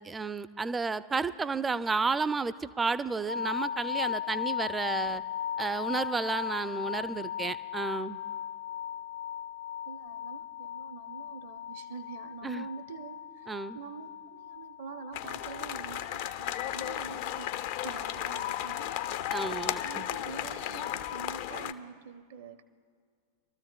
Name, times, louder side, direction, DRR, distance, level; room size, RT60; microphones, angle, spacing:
voice 1, 0.0-5.2 5.6-8.2 12.4-12.7 13.5-13.8 19.3-20.1, right 4 dB, 15° right, 15 dB, 0.4 m, -32 dB
sound 1, 3.3-17.3, left 9 dB, 85° left, 1.9 m, -38 dB
voice 2, 9.9-17.5 17.8-19.3 19.8-22.6, right 5 dB, 55° right, 11 dB, 0.6 m, -46 dB
sound 2, 15.1-21.7, left 12 dB, 50° left, 0.4 m, -34 dB
26.5 x 13.5 x 2.2 m, 2.1 s
figure-of-eight pair, 90°, 0 cm